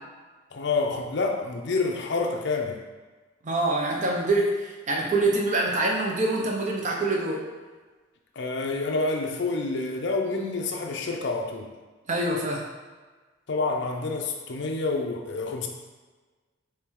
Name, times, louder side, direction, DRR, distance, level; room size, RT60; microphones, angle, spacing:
voice 1, 0.5-2.8 8.4-11.7 13.5-15.7, left 3 dB, 55° left, 2 dB, 0.5 m, -28 dB
voice 2, 3.4-7.5 12.1-12.6, right 2 dB, 35° right, -1 dB, 0.7 m, -25 dB
4.5 x 3.2 x 3.6 m, 1.3 s
head